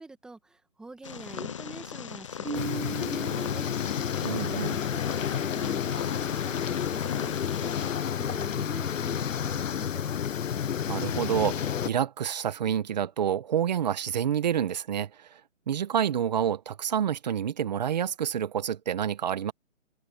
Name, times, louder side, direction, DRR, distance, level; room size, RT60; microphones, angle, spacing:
voice 1, 0.0-3.7 4.5-10.2, right 2 dB, ahead, 2.1 m, -46 dB
Purr, 1.0-7.9, left 8 dB, 25° left, 0.9 m, -39 dB
Marimba xylophone, 2.4-4.5, right 5 dB, 75° right, 6.7 m, -38 dB
sound 1, 2.5-11.9, left 8 dB, 80° left, 0.7 m, -30 dB
voice 2, 4.2-4.8 10.9-15.4 15.7-19.5, right 9 dB, 35° right, 1.6 m, -28 dB
hypercardioid pair, 165°, 38 cm